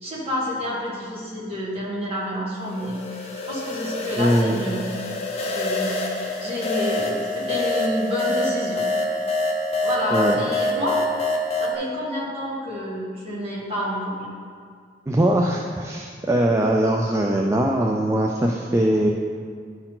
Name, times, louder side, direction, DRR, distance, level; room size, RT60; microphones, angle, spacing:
voice 1, 0.0-4.9 5.3-9.2 9.8-11.0 11.6-14.3, equal, 35° right, -6 dB, 1.9 m, -29 dB
sound 1, 2.7-11.8, left 2 dB, 35° left, 0.8 m, -26 dB
voice 2, 4.2-4.6 10.1-10.4 15.1-19.1, right 1 dB, 15° right, 0 dB, 0.4 m, -21 dB
11.0 x 4.5 x 3.8 m, 2.1 s
head